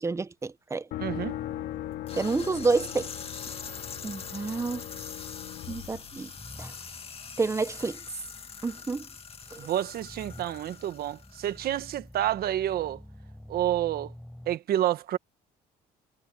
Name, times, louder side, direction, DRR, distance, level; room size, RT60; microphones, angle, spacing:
voice 1, 0.0-0.9 2.1-3.1 4.0-4.8 5.7-6.3 6.6-6.7 7.4-8.0 8.6-9.1 9.5-9.6, right 4 dB, 15° right, 0.7 m, -29 dB
sound 1, 0.9-6.8, left 14 dB, 80° left, 1.9 m, -39 dB
sound 2, 1.0-14.6, left 1 dB, 5° left, 4.1 m, -50 dB
voice 2, 1.0-1.4 9.6-13.0 13.5-14.1 14.5-15.2, right 12 dB, 65° right, 1.4 m, -29 dB
sound 3, 2.1-11.8, left 6 dB, 35° left, 2.1 m, -44 dB
cardioid pair, 110°, 17 cm